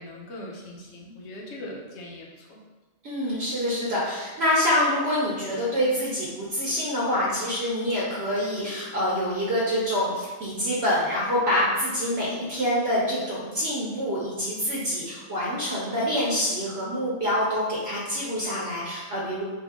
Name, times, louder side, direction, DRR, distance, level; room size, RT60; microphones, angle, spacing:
voice 1, 0.0-2.6, left 1 dB, 70° left, -2 dB, 1.0 m, -40 dB
voice 2, 3.0-19.4, equal, 60° right, -6 dB, 1.0 m, -26 dB
3.7 x 2.6 x 3.6 m, 1.2 s
omnidirectional pair, 1.3 m